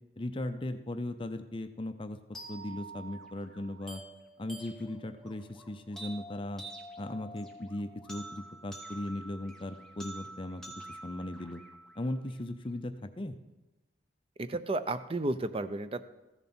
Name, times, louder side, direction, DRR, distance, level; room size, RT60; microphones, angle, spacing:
voice 1, 0.2-2.2 2.5-4.0 4.4-6.6 7.0-11.6 12.0-13.3, left 1 dB, 30° left, 9 dB, 0.5 m, -38 dB
sound 1, 2.3-12.4, right 2 dB, 5° left, 1.2 m, -48 dB
voice 2, 14.4-16.0, right 2 dB, 30° right, 11 dB, 0.5 m, -32 dB
15.0 x 6.9 x 4.4 m, 1.0 s
head